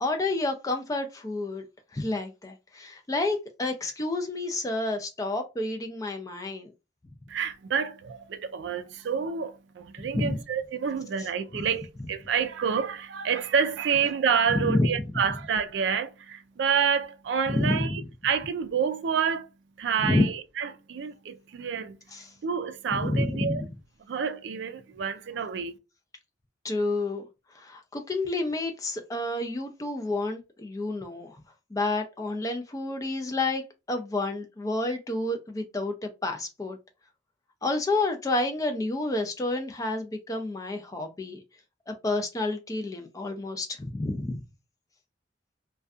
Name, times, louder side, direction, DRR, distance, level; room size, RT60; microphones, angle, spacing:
voice 1, 0.0-1.6 1.9-6.7 10.1-10.4 11.2-11.3 14.5-14.9 17.5-18.0 20.0-20.2 22.1-22.3 22.9-23.7 26.6-27.2 27.5-31.4 31.7-33.6 33.9-36.8 37.6-41.4 41.9-44.4, left 2 dB, 20° left, 0.3 m, -29 dB
voice 2, 7.3-19.5 19.8-22.0 22.4-23.6 24.1-25.8, right 7 dB, 70° right, 0.3 m, -28 dB
2.5 x 2.2 x 2.3 m
head